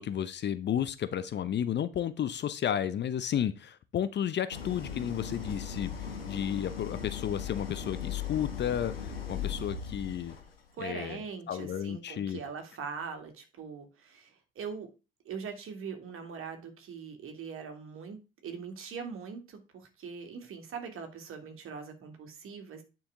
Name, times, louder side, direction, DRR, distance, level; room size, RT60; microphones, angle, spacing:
voice 1, 0.0-10.4 10.8-12.4, left 9 dB, 40° left, 13 dB, 0.9 m, -32 dB
Idling, 4.5-10.6, left 7 dB, 80° left, 1.5 m, -38 dB
voice 2, 10.8-14.9 15.2-18.2 18.4-22.8, right 6 dB, 45° right, 4 dB, 2.6 m, -41 dB
9.7 x 6.0 x 3.7 m, 0.29 s
figure-of-eight pair, 55°, 29 cm